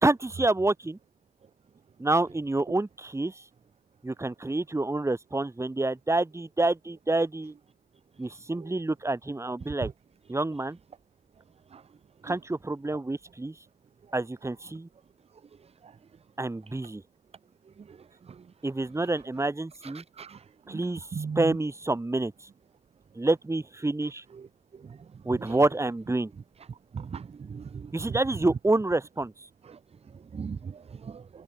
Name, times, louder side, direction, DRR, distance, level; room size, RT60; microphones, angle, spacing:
voice 1, 0.0-1.0 2.0-3.3 4.0-7.5 8.2-9.9 10.3-10.8 12.2-13.5 14.1-14.9 16.4-17.0 18.6-20.0 20.7-21.1 21.4-22.3 23.2-24.2 25.2-26.3 27.9-29.3, right 2 dB, 15° right, 2.4 m, -27 dB
voice 2, 19.9-20.4 20.7-20.8 21.1-21.5 26.9-27.2 27.5-27.9 30.3-30.7 31.0-31.2, right 6 dB, 30° right, 0.8 m, -36 dB
cardioid pair, 90°, 20 cm